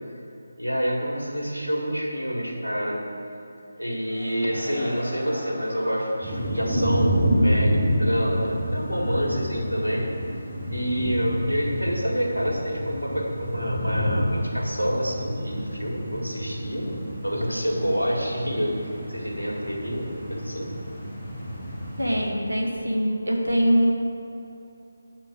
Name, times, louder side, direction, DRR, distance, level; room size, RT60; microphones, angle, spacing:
voice 1, 0.6-3.0 3.8-10.1 10.7-20.7, equal, 85° left, -2 dB, 1.8 m, -28 dB
sound 1, 3.8-6.5 6.9-7.0, equal, 40° left, 1.5 m, -39 dB
sound 2, 6.2-22.3, equal, ahead, 2.0 m, -28 dB
voice 2, 22.0-23.9, equal, 75° right, 0 dB, 1.4 m, -23 dB
7.9 x 4.4 x 7.0 m, 2.8 s
figure-of-eight pair, 155°, 0 cm